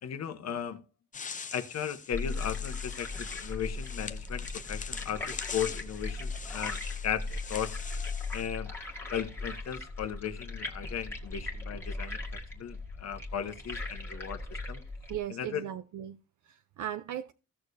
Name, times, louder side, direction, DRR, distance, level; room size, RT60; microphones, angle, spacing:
voice 1, 0.0-0.8 1.5-7.8 8.3-8.7 9.1-14.8 15.3-15.7, left 8 dB, 55° left, 1.1 m, -36 dB
sound 1, 1.1-8.5, left 6 dB, 25° left, 0.6 m, -43 dB
sound 2, 2.1-15.2, left 3 dB, 10° left, 1.7 m, -38 dB
voice 2, 15.1-16.2 16.4-17.3, right 11 dB, 75° right, 0.7 m, -37 dB
16.0 x 6.5 x 2.7 m
wide cardioid pair, 175°, 31 cm